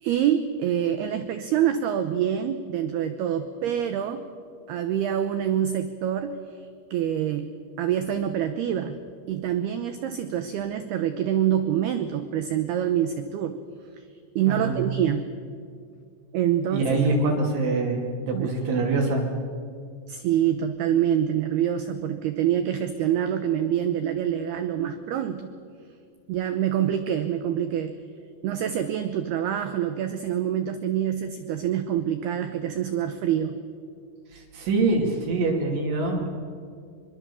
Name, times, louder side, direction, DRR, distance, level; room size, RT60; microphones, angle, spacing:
voice 1, 0.0-4.2 4.7-6.4 6.9-9.0 9.3-13.6 14.4-15.3 16.3-17.0 18.3-18.5 20.1-25.5 26.3-27.9 28.4-33.6, right 10 dB, 85° right, 9 dB, 2.2 m, -26 dB
voice 2, 14.4-14.8 16.7-19.3 34.3-36.3, right 3 dB, 65° right, 0 dB, 4.9 m, -24 dB
25.5 x 23.5 x 7.0 m, 2.2 s
omnidirectional pair, 6.0 m